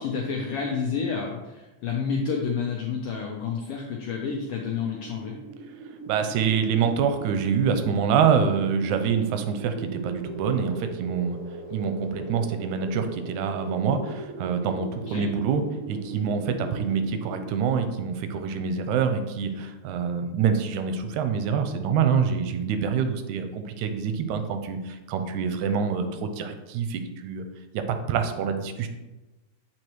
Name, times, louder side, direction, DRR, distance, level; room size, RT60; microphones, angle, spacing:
voice 1, 0.0-5.3 15.1-15.3, left 5 dB, 80° left, 0 dB, 1.3 m, -29 dB
sound 1, 4.6-17.7, right 3 dB, 65° right, 1.6 m, -40 dB
voice 2, 6.1-11.4 11.7-27.4 27.7-27.8 28.1-28.9, right 6 dB, 90° right, 8 dB, 2.0 m, -26 dB
7.9 x 4.2 x 3.1 m, 1.1 s
omnidirectional pair, 3.4 m